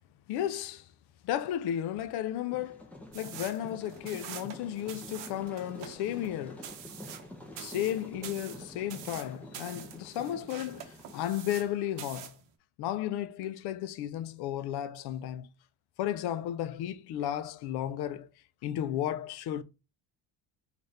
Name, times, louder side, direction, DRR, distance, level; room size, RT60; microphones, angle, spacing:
voice 1, 0.3-0.8 1.2-2.8 3.1-6.7 7.6-12.3 12.8-15.5 16.0-18.3 18.6-19.6, left 11 dB, 65° left, 0.5 m, -34 dB
sound 1, 2.5-11.6, left 1 dB, 5° left, 0.5 m, -48 dB
sound 2, 3.1-11.7 12.0-12.4, right 9 dB, 90° right, 0.8 m, -46 dB
4.1 x 2.5 x 3.2 m
cardioid pair, 160°, 41 cm